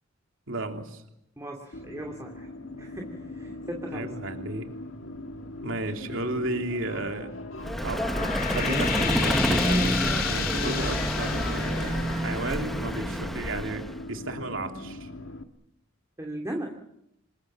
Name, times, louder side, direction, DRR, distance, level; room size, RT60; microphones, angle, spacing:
voice 1, 0.5-1.0 3.9-4.7 5.6-7.3 7.8-15.1, right 2 dB, 70° right, 4 dB, 3.2 m, -33 dB
voice 2, 1.4-2.5 2.8-4.1 16.2-16.7, right 1 dB, 15° right, 1 dB, 2.5 m, -37 dB
sound 1, 1.7-15.4, left 2 dB, 70° left, 1.9 m, -40 dB
Vehicle, 7.6-14.0, equal, ahead, 1.1 m, -28 dB
sound 2, 7.8-13.0, left 7 dB, 45° left, 2.4 m, -32 dB
27.5 x 22.5 x 7.4 m, 0.81 s
head